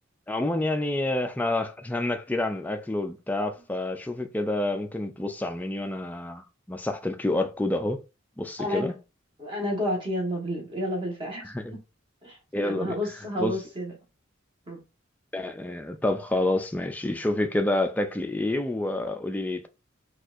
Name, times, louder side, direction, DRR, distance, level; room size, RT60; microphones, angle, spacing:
voice 1, 0.3-8.0 8.4-8.9 11.4-11.8 12.5-13.0 13.4-13.5 15.3-19.7, left 1 dB, 10° left, 0.3 m, -28 dB
voice 2, 9.4-11.8 12.2-13.9 14.7-14.8, equal, 25° right, 1.2 m, -31 dB
4.3 x 2.4 x 2.5 m
head